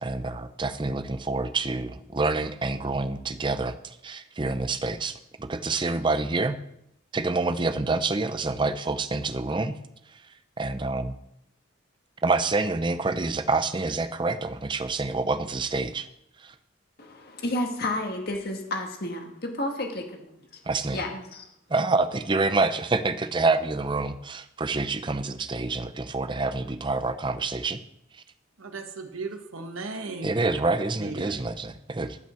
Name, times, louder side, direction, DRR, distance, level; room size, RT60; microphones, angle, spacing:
voice 1, 0.0-6.6 7.1-9.8 10.6-11.1 12.2-16.1 16.4-16.5 20.7-21.0 21.7-27.8 30.2-32.2, right 3 dB, 25° right, 10 dB, 0.6 m, -27 dB
voice 2, 17.0-20.2 20.9-21.5, left 1 dB, 50° left, 3 dB, 1.6 m, -31 dB
voice 3, 28.6-30.3 30.9-31.4, right 3 dB, 90° right, 6 dB, 1.2 m, -36 dB
12.0 x 5.6 x 7.0 m, 0.81 s
head